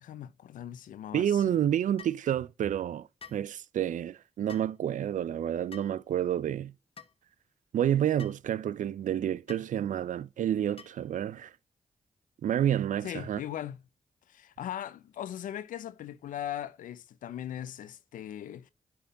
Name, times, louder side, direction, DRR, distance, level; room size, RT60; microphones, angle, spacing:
voice 1, 0.0-1.6 13.0-13.8 14.3-18.7, left 11 dB, 85° left, 0.5 m, -39 dB
voice 2, 1.1-6.7 7.7-11.5 12.4-13.4, right 10 dB, 75° right, 0.4 m, -29 dB
sound 1, 2.0-2.2 3.2-3.5 4.5-4.7 5.7-6.0 7.0-7.1 8.2-8.4 9.5-9.7 10.8-11.1, left 6 dB, 45° left, 1.2 m, -49 dB
10.0 x 3.6 x 3.8 m
supercardioid pair, 40°, 13 cm